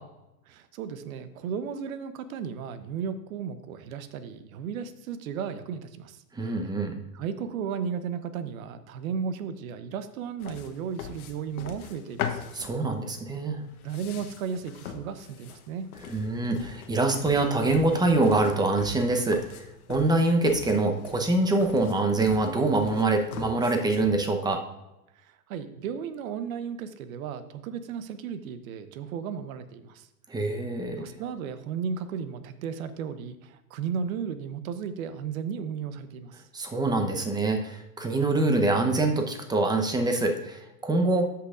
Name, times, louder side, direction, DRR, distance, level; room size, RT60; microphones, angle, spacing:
voice 1, 0.5-6.2 7.1-12.4 13.8-15.9 25.2-30.1 31.0-36.4, right 7 dB, 60° right, 12 dB, 0.9 m, -34 dB
voice 2, 6.3-7.0 12.5-13.6 16.0-19.4 19.9-24.6 30.3-31.1 36.5-41.3, right 2 dB, 10° right, 4 dB, 0.8 m, -25 dB
sound 1, 10.4-24.2, left 8 dB, 70° left, 1.0 m, -41 dB
13.5 x 5.8 x 2.5 m, 0.94 s
hypercardioid pair, 110°, 46 cm